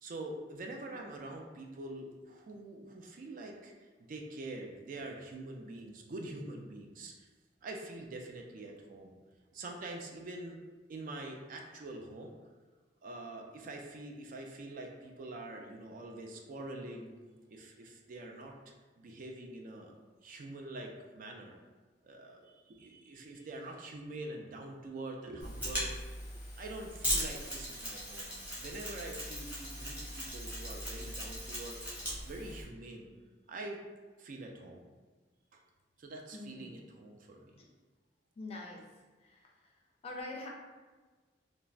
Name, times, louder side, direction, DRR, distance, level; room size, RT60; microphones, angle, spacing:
voice 1, 0.0-7.3 7.6-9.1 9.5-10.6 10.9-12.3 13.0-17.2 17.5-18.5 19.0-19.9 20.2-21.6 22.0-26.3 26.6-31.8 32.2-33.1 33.5-33.8 34.2-34.9 35.5-35.6 36.0-37.6, right 2 dB, 50° right, 2 dB, 0.3 m, -45 dB
Mechanisms, 25.4-32.6, equal, 10° right, 0.9 m, -39 dB
voice 2, 36.3-36.8 38.4-38.8 39.2-39.7 40.0-40.5, left 2 dB, 35° left, -1 dB, 0.4 m, -44 dB
3.3 x 2.0 x 2.4 m, 1.3 s
head